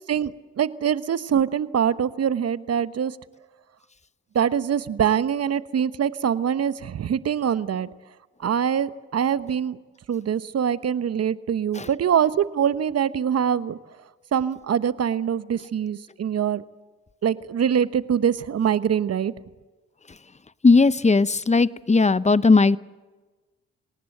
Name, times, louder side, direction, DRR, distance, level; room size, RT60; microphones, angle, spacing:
voice 1, 0.1-3.2 4.3-7.9 8.4-9.8 10.1-13.8 14.3-16.6 17.2-19.3, right 8 dB, 55° right, 14 dB, 1.1 m, -24 dB
voice 2, 20.6-22.8, left 3 dB, 25° left, 17 dB, 0.9 m, -17 dB
30.0 x 18.5 x 7.8 m, 1.3 s
hypercardioid pair, 45°, 30 cm